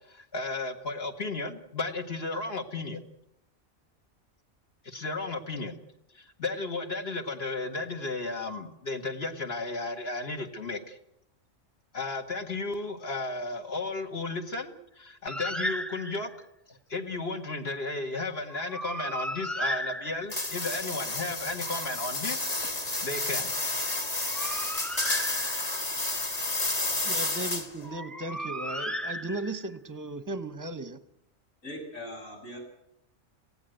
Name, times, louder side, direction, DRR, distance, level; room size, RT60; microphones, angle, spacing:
voice 1, 0.1-3.1 4.8-5.8 6.1-11.0 11.9-16.3 16.7-22.5 23.0-23.5, left 3 dB, 50° left, 5 dB, 2.0 m, -34 dB
Bird, 15.3-16.4 18.5-20.6 24.0-25.9 27.8-29.7, equal, ahead, 0.6 m, -35 dB
sound 1, 20.3-27.9, left 2 dB, 30° left, 1.6 m, -31 dB
voice 2, 27.0-31.0, right 2 dB, 15° right, 12 dB, 1.0 m, -36 dB
voice 3, 31.6-32.6, left 1 dB, 80° left, 0 dB, 7.3 m, -40 dB
18.5 x 16.0 x 9.2 m, 0.78 s
omnidirectional pair, 1.4 m